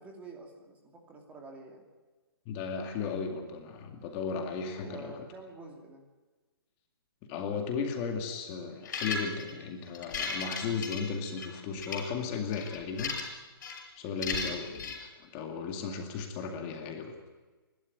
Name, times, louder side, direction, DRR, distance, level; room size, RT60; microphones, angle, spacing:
voice 1, 0.0-1.8 4.7-6.0 14.4-14.6, right 3 dB, 10° right, 2 dB, 2.6 m, -48 dB
voice 2, 2.5-5.2 7.3-13.1 14.0-17.1, left 5 dB, 25° left, 3 dB, 2.2 m, -35 dB
sound 1, 8.8-9.5 9.9-11.5 11.8-12.0 12.5-13.3 13.6-13.8 14.2-15.0, left 5 dB, 50° left, 6.0 m, -35 dB
27.0 x 12.5 x 9.5 m, 1.3 s
hypercardioid pair, 165°, 13 cm